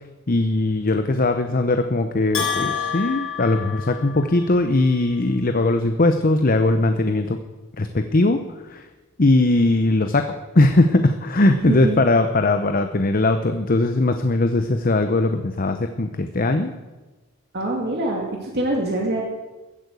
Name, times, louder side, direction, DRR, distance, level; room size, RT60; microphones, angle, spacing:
voice 1, 0.3-7.4 7.8-8.9 9.2-16.7, left 2 dB, 40° left, 8 dB, 0.8 m, -20 dB
Bell, 2.3-4.5, left 7 dB, 70° left, 6.5 m, -28 dB
voice 2, 11.7-12.0 17.5-19.2, right 1 dB, 50° right, -1 dB, 2.3 m, -24 dB
15.0 x 8.8 x 8.1 m, 1.2 s
head